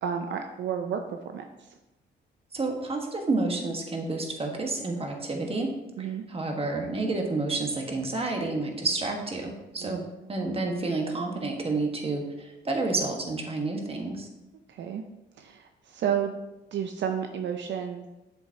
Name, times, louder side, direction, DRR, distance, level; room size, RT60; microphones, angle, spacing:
voice 1, 0.0-1.4 6.0-6.2 9.8-10.1 14.7-15.0 15.4-16.3 16.7-18.1, right 8 dB, 65° right, 5 dB, 0.6 m, -31 dB
voice 2, 2.5-5.7 6.0-10.0 10.3-14.3, right 3 dB, 30° right, 2 dB, 1.5 m, -30 dB
7.9 x 7.2 x 2.9 m, 1.0 s
cardioid pair, 90°, 20 cm